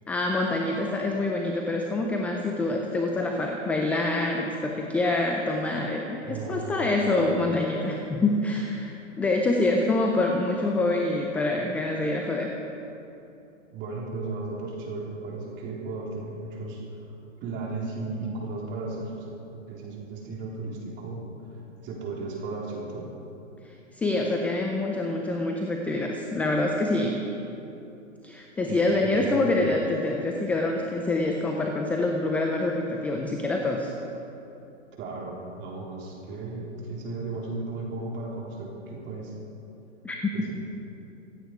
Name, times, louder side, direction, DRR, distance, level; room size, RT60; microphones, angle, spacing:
voice 1, 0.1-12.5 23.9-27.2 28.2-33.9 40.0-40.5, left 2 dB, 5° left, 1 dB, 0.4 m, -26 dB
voice 2, 6.2-7.0 13.7-16.8 17.4-19.3 19.7-21.3 21.8-23.1 28.7-29.5 34.9-39.3 40.3-40.5, right 3 dB, 30° right, -3 dB, 3.9 m, -35 dB
25.0 x 9.2 x 4.8 m, 2.9 s
hypercardioid pair, 125°, 38 cm